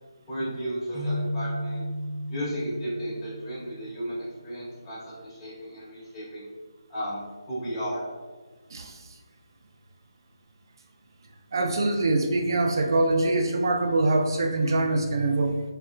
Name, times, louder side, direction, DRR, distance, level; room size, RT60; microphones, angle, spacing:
voice 1, 0.3-1.8 2.3-6.5 6.9-8.0, equal, 10° left, -11 dB, 1.1 m, -34 dB
sound 1, 0.9-4.5, equal, 15° right, 0.8 m, -34 dB
voice 2, 8.7-9.0 11.5-15.6, right 2 dB, 55° right, 3 dB, 0.4 m, -24 dB
3.2 x 2.9 x 2.3 m, 1.4 s
hypercardioid pair, 165°, 3 cm